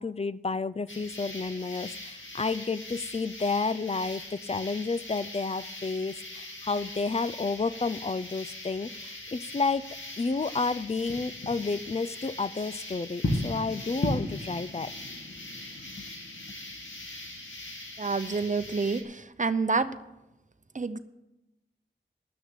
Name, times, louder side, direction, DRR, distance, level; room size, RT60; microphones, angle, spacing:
voice 1, 0.0-14.9 16.0-16.1 16.5-16.6, left 4 dB, 30° left, 0.4 m, -31 dB
sound 1, 0.9-19.0, left 1 dB, 75° left, 2.1 m, -38 dB
voice 2, 18.0-19.9 20.7-21.0, right 4 dB, 40° right, 0.8 m, -28 dB
10.5 x 6.4 x 8.8 m
wide cardioid pair, 50°, 20 cm